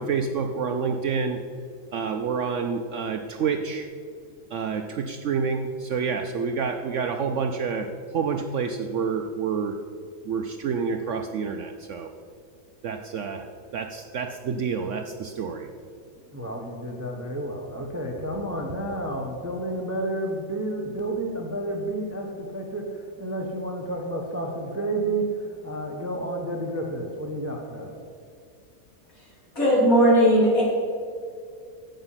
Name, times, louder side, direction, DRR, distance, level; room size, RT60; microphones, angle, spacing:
voice 1, 0.0-1.4 1.9-3.9 4.5-7.9 8.1-9.7 10.3-12.1 12.8-13.5 13.7-15.7 17.7-17.8, right 5 dB, 65° right, 6 dB, 0.8 m, -28 dB
voice 2, 16.3-28.0, right 1 dB, 10° right, 2 dB, 0.9 m, -30 dB
voice 3, 29.6-30.6, equal, 60° left, -5 dB, 3.8 m, -17 dB
10.5 x 8.1 x 5.7 m, 2.3 s
omnidirectional pair, 1.6 m